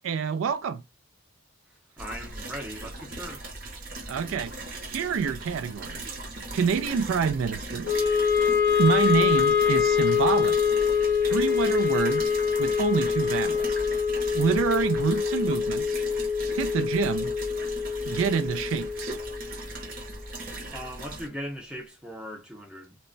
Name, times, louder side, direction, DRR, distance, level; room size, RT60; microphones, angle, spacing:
voice 1, 0.0-0.8 4.1-4.5 4.9-6.2 6.5-8.0 8.8-10.6 11.3-12.3 12.6-13.8 14.3-16.0 16.6-17.3 18.0-19.2, right 6 dB, 75° right, 0.3 m, -27 dB
voice 2, 2.0-3.4 20.7-23.0, equal, 5° right, 0.5 m, -39 dB
sound 1, 2.0-21.3, right 2 dB, 45° right, 0.7 m, -39 dB
Wind instrument woodwind instrument, 7.8-20.1, left 6 dB, 50° left, 0.5 m, -25 dB
2.1 x 2.1 x 3.7 m
head